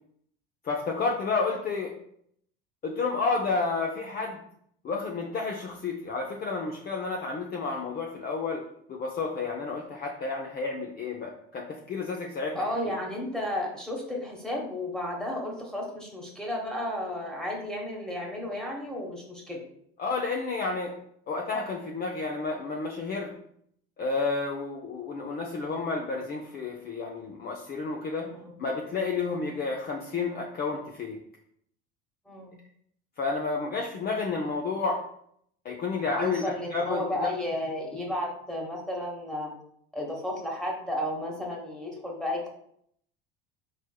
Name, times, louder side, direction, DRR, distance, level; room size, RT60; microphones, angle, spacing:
voice 1, 0.6-1.9 2.8-4.4 4.8-8.6 8.9-12.6 20.0-20.9 21.3-23.3 24.0-28.3 28.6-31.2 33.2-35.0 35.6-37.0, left 4 dB, 30° left, 0 dB, 0.5 m, -31 dB
voice 2, 12.5-19.6 28.2-28.6 32.3-32.6 36.1-39.5 39.9-42.5, left 1 dB, ahead, -3 dB, 1.1 m, -33 dB
4.3 x 3.1 x 2.2 m, 0.68 s
hypercardioid pair, 80°, 29 cm